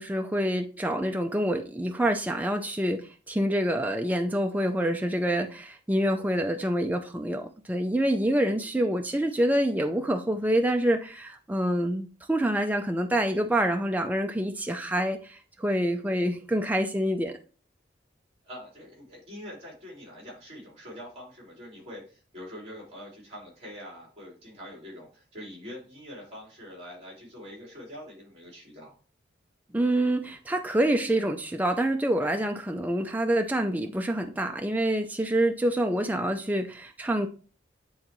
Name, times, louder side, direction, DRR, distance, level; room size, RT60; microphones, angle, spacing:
voice 1, 0.0-17.4 29.7-37.3, right 1 dB, 10° right, 4 dB, 0.4 m, -26 dB
voice 2, 18.4-28.9, equal, 30° right, -3 dB, 3.8 m, -44 dB
9.5 x 3.8 x 3.1 m, 0.37 s
head